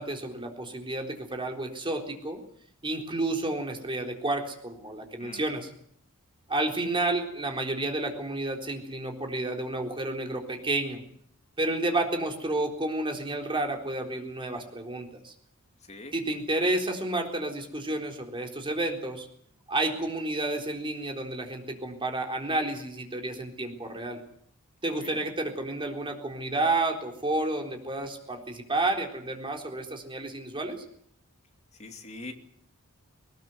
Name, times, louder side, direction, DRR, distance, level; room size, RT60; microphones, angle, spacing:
voice 1, 0.0-2.4 2.8-5.7 6.5-11.0 11.6-15.3 16.1-19.3 19.7-24.2 24.8-30.8, right 2 dB, 25° right, 2 dB, 3.9 m, -30 dB
voice 2, 5.2-5.5 15.9-16.1 24.9-25.3 31.8-32.3, left 2 dB, 30° left, 4 dB, 2.7 m, -43 dB
20.5 x 19.5 x 8.0 m, 0.68 s
head